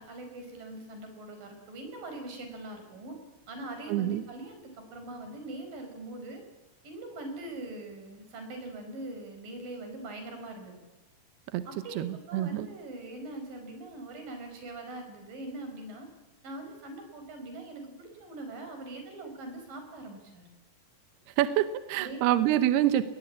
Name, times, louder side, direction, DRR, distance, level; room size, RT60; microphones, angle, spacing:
voice 1, 0.0-3.2 3.5-6.4 6.8-10.8 11.7-16.1 16.4-20.4 22.0-22.5, right 2 dB, 50° right, 5 dB, 6.4 m, -42 dB
voice 2, 3.9-4.2 11.5-11.6 12.0-12.7 21.4-23.0, right 12 dB, 75° right, 12 dB, 2.7 m, -26 dB
21.0 x 19.0 x 8.5 m, 1.1 s
omnidirectional pair, 5.0 m